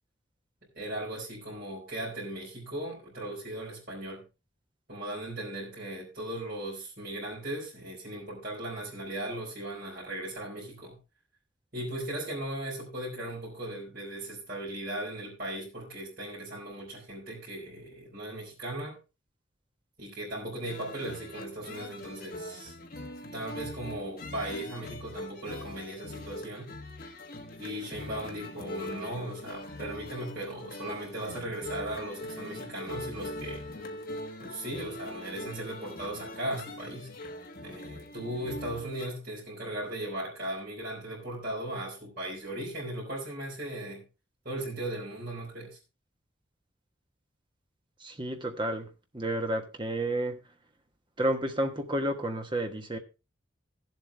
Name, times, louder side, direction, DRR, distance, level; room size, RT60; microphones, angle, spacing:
voice 1, 0.7-4.2 4.9-11.0 11.7-19.0 20.0-22.7 23.3-26.7 27.6-33.7 34.4-37.1 37.6-44.0 44.4-45.8, right 1 dB, 50° right, 4.4 m, -37 dB
sound 1, 20.6-39.1, left 1 dB, 50° left, 1.5 m, -42 dB
voice 2, 48.0-48.9 49.1-50.4 51.2-53.0, right 1 dB, 25° right, 1.3 m, -31 dB
16.0 x 7.7 x 3.4 m
head